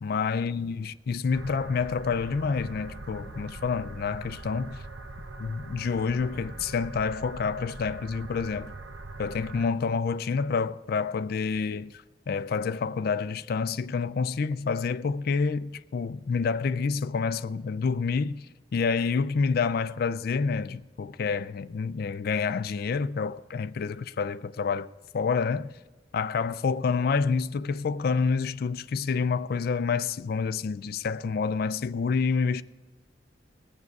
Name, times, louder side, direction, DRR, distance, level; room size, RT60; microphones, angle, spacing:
voice 1, 0.0-4.8 5.4-8.7 9.2-18.5 18.7-24.9 25.1-25.7 26.1-32.6, left 5 dB, 55° left, 0.4 m, -28 dB
sound 1, 1.3-9.7, right 2 dB, 90° right, 0.8 m, -42 dB
19.5 x 7.4 x 4.7 m
head